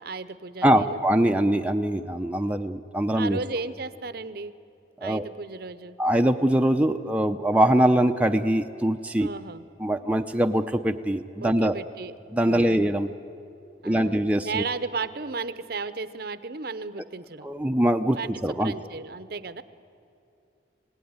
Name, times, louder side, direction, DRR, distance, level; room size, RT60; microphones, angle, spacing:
voice 1, 0.0-1.0 3.1-4.5 5.0-6.0 9.2-9.6 10.0-10.2 11.4-12.1 12.4-12.8 13.8-17.5 18.1-19.6, right 4 dB, 55° right, 13 dB, 0.8 m, -34 dB
voice 2, 0.6-3.4 5.0-5.3 6.0-9.3 9.8-11.7 12.3-13.1 13.8-14.6 17.4-18.7, right 1 dB, 5° right, 5 dB, 0.6 m, -23 dB
26.5 x 18.0 x 9.6 m, 2.6 s
head